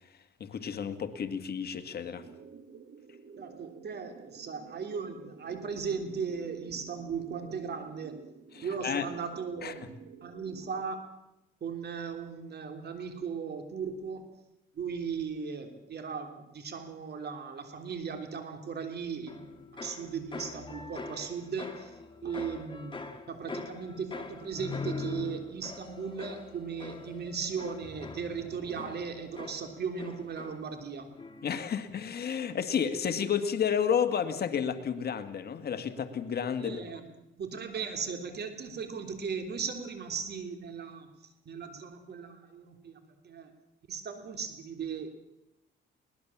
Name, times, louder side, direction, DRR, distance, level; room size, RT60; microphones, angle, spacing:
voice 1, 0.4-2.2 8.5-9.1 9.6-9.9 31.4-36.8, left 7 dB, 55° left, 9 dB, 1.9 m, -31 dB
sound 1, 2.2-10.8, right 6 dB, 70° right, 2.6 m, -52 dB
voice 2, 3.4-8.2 8.6-9.8 10.2-11.2 11.6-14.3 14.8-21.9 22.2-31.1 36.6-41.1 41.5-43.0 43.2-43.5 43.9-45.2, right 6 dB, 55° right, 6 dB, 3.5 m, -37 dB
sound 2, 19.3-30.9 31.2-31.7, left 4 dB, 25° left, 2.3 m, -43 dB
21.5 x 19.0 x 7.4 m, 0.89 s
cardioid pair, 90°, 20 cm